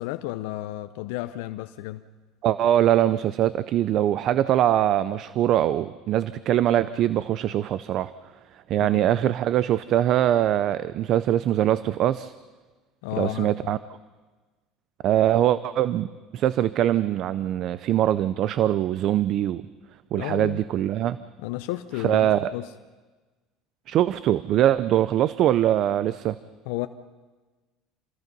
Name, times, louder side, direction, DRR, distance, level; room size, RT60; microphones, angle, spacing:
voice 1, 0.0-2.0 8.8-9.0 13.0-13.8 20.1-20.6 21.4-22.7 26.7-26.9, left 16 dB, 80° left, 0.6 m, -32 dB
voice 2, 2.4-8.1 8.7-12.3 13.2-13.8 15.0-19.6 20.1-21.2 22.0-22.5 23.9-26.4, right 12 dB, 55° right, 0.5 m, -22 dB
27.0 x 19.5 x 5.4 m
supercardioid pair, 115°, 0 cm